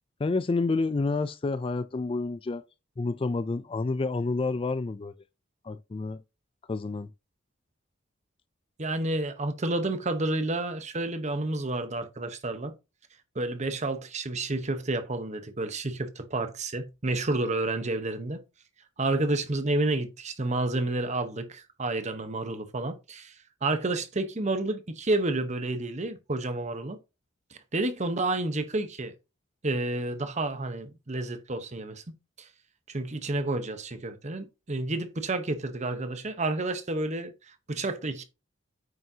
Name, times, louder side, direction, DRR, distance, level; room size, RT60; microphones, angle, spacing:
voice 1, 0.2-2.6 3.0-5.1 5.6-6.2 6.7-7.1, left 3 dB, 25° left, 0.3 m, -29 dB
voice 2, 8.8-12.7 13.3-18.4 19.0-23.3 23.6-27.0 27.7-29.1 29.6-32.0 32.4-32.5 32.9-38.2, right 2 dB, 35° right, 1.0 m, -30 dB
9.0 x 6.3 x 2.8 m
head